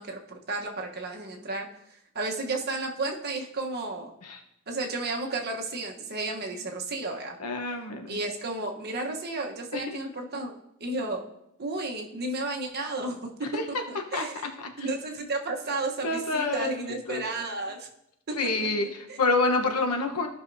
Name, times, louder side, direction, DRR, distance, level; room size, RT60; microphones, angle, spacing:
voice 1, 0.0-1.7 2.1-4.1 4.7-7.4 8.1-11.2 11.6-14.5 14.8-17.9 18.3-19.2, right 2 dB, 45° right, 1 dB, 1.1 m, -33 dB
voice 2, 7.4-8.2 9.7-10.0 13.5-13.8 14.1-14.3 14.6-14.9 16.0-17.2 18.3-20.3, left 3 dB, 90° left, 4 dB, 1.1 m, -28 dB
15.0 x 5.6 x 2.7 m, 0.82 s
head